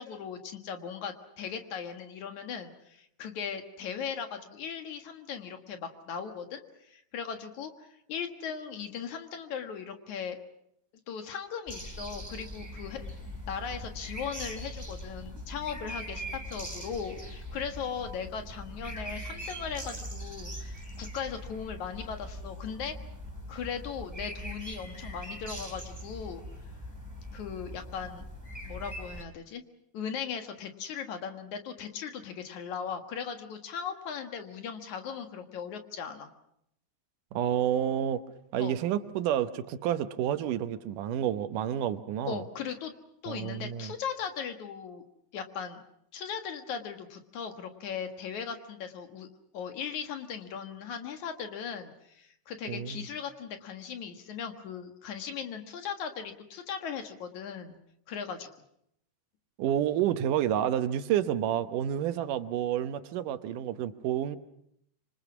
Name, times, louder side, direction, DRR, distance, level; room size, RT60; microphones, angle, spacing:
voice 1, 0.0-10.4 11.1-13.1 13.5-22.9 23.5-26.4 27.3-28.2 28.6-29.6 29.9-36.3 38.6-38.8 42.3-42.9 43.2-45.0 45.3-45.8 46.1-49.3 49.5-57.8 58.1-58.5, left 7 dB, 70° left, 6 dB, 2.9 m, -38 dB
sound 1, 11.7-29.2, equal, 5° right, 3.4 m, -42 dB
sound 2, 11.8-21.8, right 1 dB, 20° right, 2.4 m, -51 dB
voice 2, 37.3-38.2 38.5-42.4 43.3-43.9 52.7-53.0 59.6-64.4, right 10 dB, 85° right, 11 dB, 2.6 m, -29 dB
26.0 x 25.5 x 6.1 m, 0.75 s
omnidirectional pair, 3.6 m